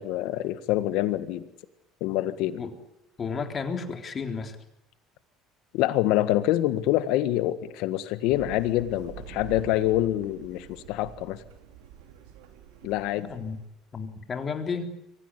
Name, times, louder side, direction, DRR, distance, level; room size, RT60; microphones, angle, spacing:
voice 1, 0.0-1.4 2.0-2.6 5.7-11.4 12.8-13.3, left 14 dB, 75° left, 13 dB, 1.7 m, -26 dB
voice 2, 3.2-4.6 13.2-13.6 13.9-14.9, left 5 dB, 35° left, 6 dB, 3.5 m, -32 dB
sound 1, 8.3-13.7, right 9 dB, 85° right, 2.9 m, -45 dB
24.0 x 16.0 x 9.7 m, 0.86 s
supercardioid pair, 90°, 0 cm